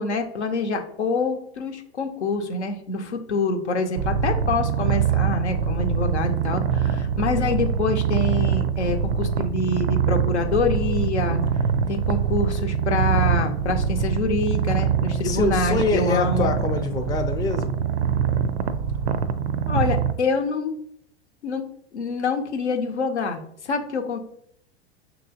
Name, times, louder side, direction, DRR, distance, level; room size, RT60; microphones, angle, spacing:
voice 1, 0.0-11.4 11.9-16.6 19.7-20.8 21.4-21.6 21.9-24.2, left 3 dB, 85° left, 5 dB, 0.7 m, -26 dB
Purr, 4.0-20.1, right 7 dB, 75° right, 0.5 m, -24 dB
voice 2, 15.2-17.7, left 4 dB, 10° left, 4 dB, 0.4 m, -25 dB
5.7 x 3.0 x 2.7 m, 0.68 s
hypercardioid pair, 95°, 33 cm